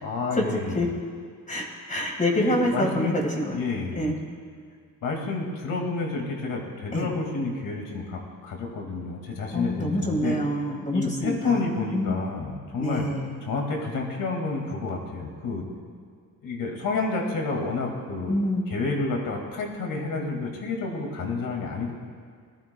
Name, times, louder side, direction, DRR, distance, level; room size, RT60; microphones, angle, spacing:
voice 1, 0.0-0.9 2.3-3.1 3.5-4.1 5.0-10.4 10.9-13.1 13.4-15.6 16.4-18.4 18.7-21.9, left 3 dB, 75° left, 1 dB, 2.2 m, -29 dB
voice 2, 1.5-3.6 3.9-4.1 6.9-7.1 9.5-11.6 11.9-12.2 12.8-13.4 18.3-18.8, left 1 dB, 25° left, 0 dB, 1.8 m, -26 dB
18.5 x 12.5 x 2.3 m, 2.1 s
cardioid pair, 110°, 33 cm